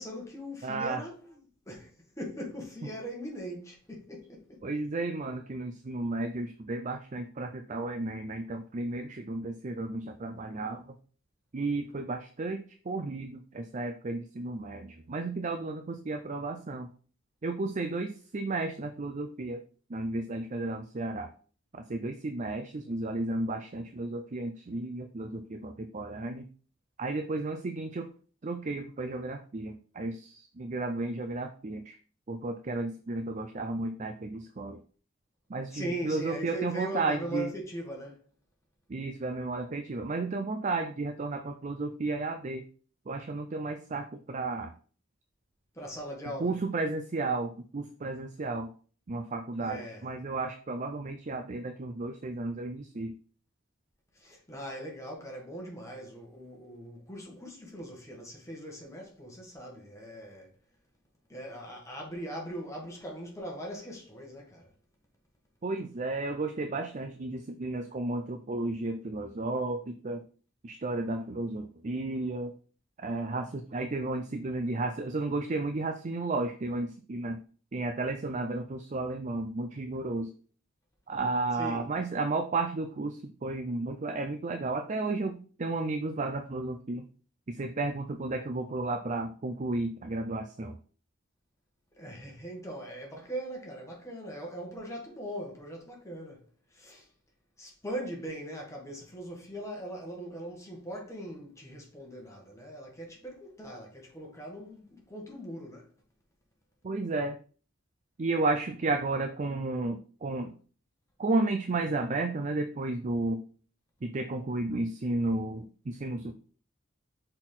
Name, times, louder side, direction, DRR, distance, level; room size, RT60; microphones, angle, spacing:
voice 1, 0.0-1.4 1.6-1.9 2.2-4.6 35.7-38.2 45.7-46.5 49.6-50.1 54.1-60.5 61.3-64.7 81.5-81.9 92.0-96.4 96.7-97.1 97.6-105.9, right 1 dB, 15° left, 1.7 m, -40 dB
voice 2, 0.6-1.0 4.6-11.0 11.5-16.9 17.4-19.6 19.9-21.3 21.7-26.5 27.0-28.1 28.4-32.0 32.3-34.8 35.5-37.5 38.9-42.7 43.1-44.7 46.4-48.7 49.1-53.1 65.6-70.2 70.6-72.5 73.0-77.4 77.7-80.3 81.1-87.0 87.5-90.8 106.8-107.4 108.2-110.5 111.2-113.4 114.0-116.3, right 2 dB, 40° right, 0.5 m, -33 dB
6.1 x 4.5 x 3.8 m
head